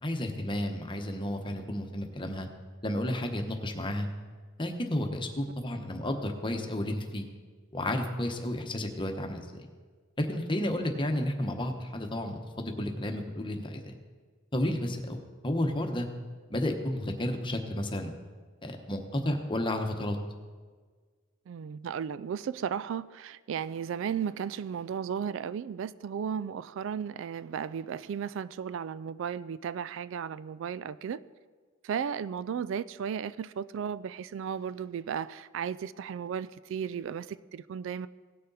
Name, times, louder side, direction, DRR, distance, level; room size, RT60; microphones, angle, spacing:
voice 1, 0.0-2.5 2.8-4.1 4.6-7.3 7.7-9.7 10.2-14.0 14.5-15.2 15.4-16.1 16.5-18.1 18.6-20.2, left 1 dB, 25° left, 1.0 m, -32 dB
voice 2, 21.5-31.2 31.8-38.1, right 7 dB, 65° right, 0.3 m, -35 dB
18.0 x 6.5 x 4.0 m
head